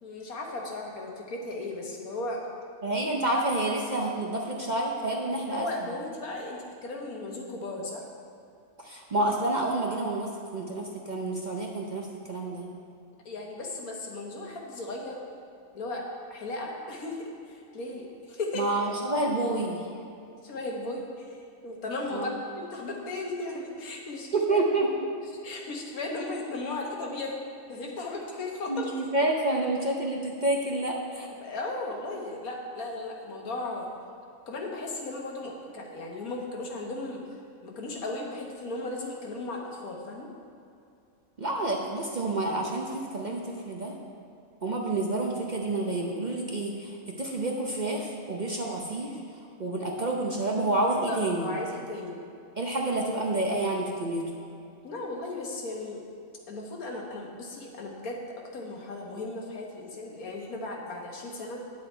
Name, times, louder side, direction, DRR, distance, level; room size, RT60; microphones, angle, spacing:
voice 1, 0.0-2.4 5.5-8.0 13.2-15.2 15.7-18.6 20.4-21.3 21.6-22.3 22.6-24.6 25.4-27.4 27.7-28.9 31.4-33.9 34.5-37.2 37.6-40.3 51.1-52.2 54.8-56.0 56.5-58.2 58.5-61.6, left 2 dB, 85° left, 0 dB, 1.7 m, -36 dB
voice 2, 2.8-5.7 8.8-12.7 18.5-19.9 22.1-22.3 24.3-25.1 28.7-31.3 41.4-43.9 44.6-49.2 49.6-51.5 52.6-54.2, right 2 dB, 40° right, -1 dB, 0.7 m, -29 dB
9.6 x 7.6 x 4.4 m, 2.5 s
omnidirectional pair, 1.5 m